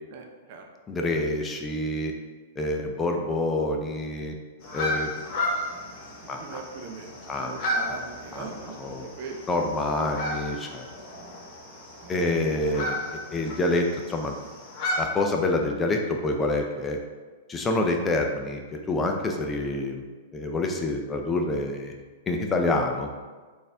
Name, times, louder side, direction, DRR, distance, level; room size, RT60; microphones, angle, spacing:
voice 1, 0.1-0.7 6.4-9.5 12.0-12.3, right 4 dB, 55° right, 3 dB, 0.7 m, -40 dB
voice 2, 0.9-2.1 2.6-4.3 4.7-5.1 6.3-6.6 7.3-7.5 8.3-8.5 8.8-9.1 9.5-10.9 12.1-13.0 13.3-14.3 15.0-17.0 17.5-18.6 18.9-20.0 20.3-21.9 22.3-23.1, left 2 dB, 20° left, 3 dB, 0.5 m, -27 dB
sound 1, 4.6-15.0, left 1 dB, 45° left, 1.1 m, -34 dB
4.0 x 2.6 x 3.4 m, 1.4 s
hypercardioid pair, 115°, 0 cm